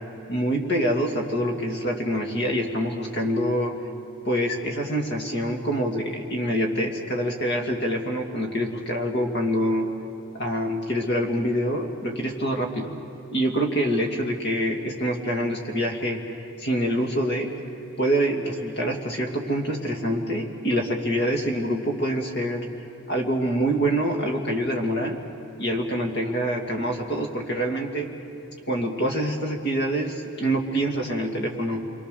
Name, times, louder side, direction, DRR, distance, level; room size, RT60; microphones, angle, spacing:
voice 1, 0.3-3.7 4.3-9.9 10.3-12.9 13.3-17.5 18.0-22.6 23.1-25.2 25.6-28.1 28.7-31.8, equal, 50° left, 2 dB, 2.4 m, -26 dB
29.0 x 23.0 x 6.9 m, 2.9 s
head